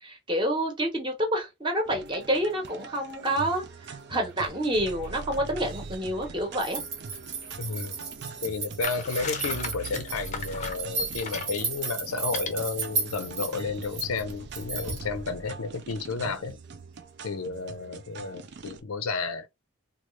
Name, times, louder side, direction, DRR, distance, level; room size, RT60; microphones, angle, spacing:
voice 1, 0.0-6.8, right 1 dB, 20° right, 0.9 m, -28 dB
sound 1, 1.9-18.8, right 4 dB, 55° right, 0.4 m, -43 dB
sound 2, 6.6-15.1, right 4 dB, 70° right, 1.1 m, -34 dB
voice 2, 7.6-8.0 8.4-16.6 17.2-19.5, left 4 dB, 90° left, 0.6 m, -32 dB
sound 3, 8.8-11.6 12.2-12.5, left 5 dB, 35° left, 0.5 m, -36 dB
3.1 x 2.4 x 3.1 m
head